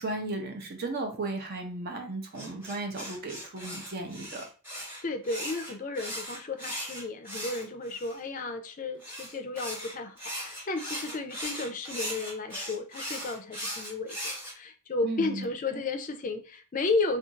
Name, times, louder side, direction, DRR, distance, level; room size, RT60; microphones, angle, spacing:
voice 1, 0.0-4.5 15.0-15.5 15.7-15.8, right 2 dB, 50° right, 3 dB, 0.6 m, -35 dB
sound 1, 2.3-8.2 9.0-14.5, equal, 10° right, 1.0 m, -38 dB
voice 2, 5.0-17.2, left 3 dB, 40° left, 7 dB, 0.4 m, -33 dB
2.5 x 2.3 x 3.9 m, 0.37 s
head